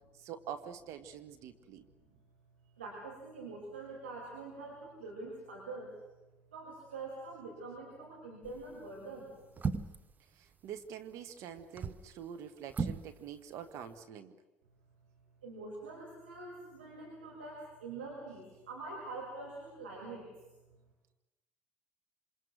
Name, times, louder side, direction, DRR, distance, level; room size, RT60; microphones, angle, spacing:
voice 1, 0.1-1.9 10.3-14.4, right 8 dB, 55° right, 8 dB, 1.5 m, -46 dB
voice 2, 2.8-5.9 6.5-9.3 15.4-20.5, right 3 dB, 80° right, -3 dB, 5.9 m, -45 dB
sound 1, 8.4-8.7 9.6-10.1 11.6-12.1 12.7-13.1 13.4-13.5, right 5 dB, 30° right, 1.2 m, -36 dB
28.0 x 26.0 x 6.4 m, 1.1 s
figure-of-eight pair, 65°, 6 cm